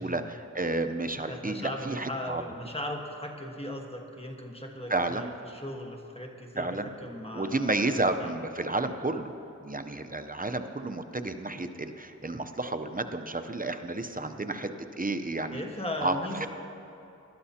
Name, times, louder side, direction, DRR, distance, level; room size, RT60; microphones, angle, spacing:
voice 1, 0.0-2.4 4.9-5.3 6.6-9.3 9.6-14.7 15.0-15.6 16.0-16.5, right 2 dB, 30° right, 7 dB, 0.7 m, -31 dB
voice 2, 1.3-8.3 14.2-14.6 15.5-16.5, left 1 dB, 20° left, 1 dB, 1.4 m, -38 dB
20.5 x 12.5 x 2.9 m, 2.8 s
wide cardioid pair, 45°, 31 cm